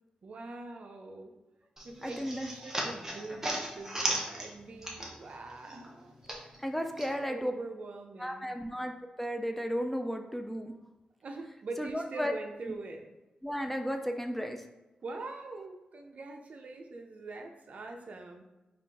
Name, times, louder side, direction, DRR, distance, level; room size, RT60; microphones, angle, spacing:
voice 1, 0.2-1.3 1.8-6.1 7.1-8.5 11.2-13.1 15.0-18.4, right 3 dB, 55° right, 3 dB, 0.6 m, -43 dB
sound 1, 1.8-5.4 5.7-7.1, right 1 dB, 15° right, 0.8 m, -36 dB
voice 2, 2.0-2.5 6.6-7.5 8.2-8.9 9.2-10.7 11.8-12.3 13.4-14.6, equal, 5° left, 5 dB, 0.3 m, -34 dB
4.9 x 2.5 x 3.5 m, 1.1 s
cardioid pair, 90°, 3 cm